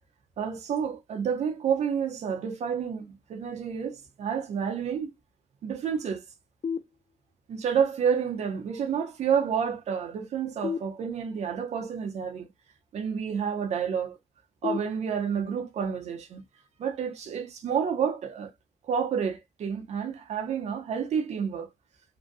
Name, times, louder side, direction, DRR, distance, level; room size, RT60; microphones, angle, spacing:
voice 1, 0.4-5.1 5.6-6.2 7.5-12.5 12.9-14.2 14.6-16.4 16.8-18.5 18.9-21.7, right 7 dB, 85° right, 0.7 m, -29 dB
sound 1, 6.6-7.6 10.6-11.6 14.6-15.6, left 6 dB, 55° left, 0.6 m, -36 dB
2.8 x 2.3 x 2.5 m
cardioid pair, 50°, 11 cm